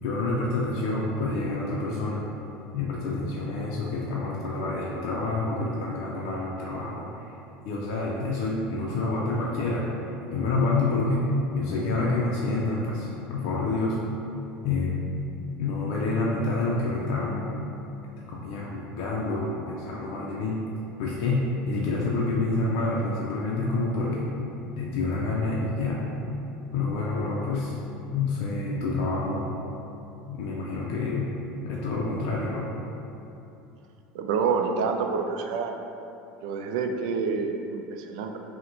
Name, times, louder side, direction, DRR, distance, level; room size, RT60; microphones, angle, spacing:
voice 1, 0.0-2.2 2.7-7.3 7.7-9.9 10.3-11.3 11.6-14.0 14.6-15.1 15.6-17.5 18.3-20.6 21.0-24.3 24.8-26.1 26.7-27.8 28.1-29.5 30.3-31.3 31.6-32.7, left 3 dB, 65° left, -4 dB, 0.4 m, -28 dB
voice 2, 34.1-35.8 36.4-38.4, right 5 dB, 80° right, 5 dB, 0.3 m, -28 dB
3.9 x 2.1 x 4.4 m, 2.9 s
cardioid pair, 155°, 4 cm